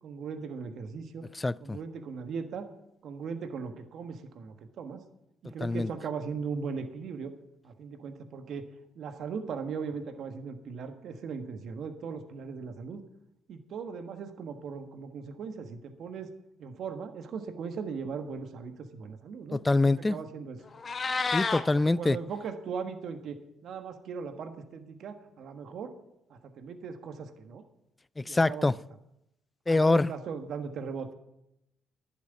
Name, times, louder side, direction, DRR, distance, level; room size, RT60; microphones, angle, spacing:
voice 1, 0.0-1.3 1.6-2.7 3.0-5.0 5.4-7.3 7.6-8.7 8.9-13.0 13.5-16.3 16.6-20.6 21.7-25.9 26.3-27.6 28.3-28.8 29.7-31.1, right 5 dB, 65° right, 1.4 m, -38 dB
voice 2, 1.4-1.8 5.6-5.9 19.5-20.2 21.3-22.2 28.2-28.7 29.7-30.1, left 2 dB, 20° left, 0.4 m, -25 dB
Meow, 20.6-21.6, left 4 dB, 40° left, 1.2 m, -30 dB
11.0 x 7.3 x 9.3 m
supercardioid pair, 75°, 0 cm